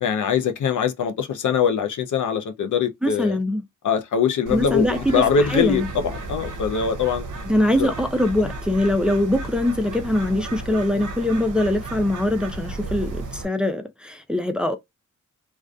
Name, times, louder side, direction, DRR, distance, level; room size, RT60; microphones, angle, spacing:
voice 1, 0.0-3.4 3.8-7.3 7.8-7.9 8.4-8.5, left 7 dB, 70° left, 0.5 m, -22 dB
voice 2, 3.0-3.6 4.5-5.9 7.4-14.8, left 1 dB, 5° right, 0.5 m, -22 dB
Bird, 4.5-13.5, right 3 dB, 70° right, 0.7 m, -34 dB
2.5 x 2.3 x 2.2 m
cardioid pair, 45°, 32 cm